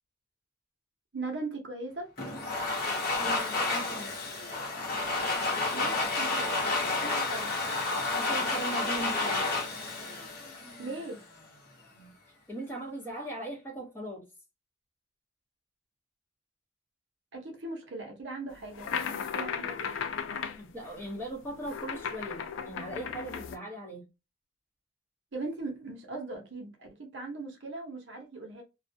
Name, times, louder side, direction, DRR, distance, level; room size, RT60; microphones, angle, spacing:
voice 1, 1.1-2.1 5.7-6.5 6.9-7.6 10.8-11.2 17.3-20.0 25.3-28.6, right 2 dB, 65° right, 0.7 m, -39 dB
Domestic sounds home sounds, 2.2-11.1, left 3 dB, 50° left, 0.8 m, -30 dB
voice 2, 3.2-4.2 8.2-9.5 11.9-12.1 12.5-14.3 20.6-24.1, right 1 dB, 10° left, 0.7 m, -39 dB
sound 1, 18.6-23.6, left 6 dB, 80° left, 0.3 m, -36 dB
2.3 x 2.1 x 2.6 m
head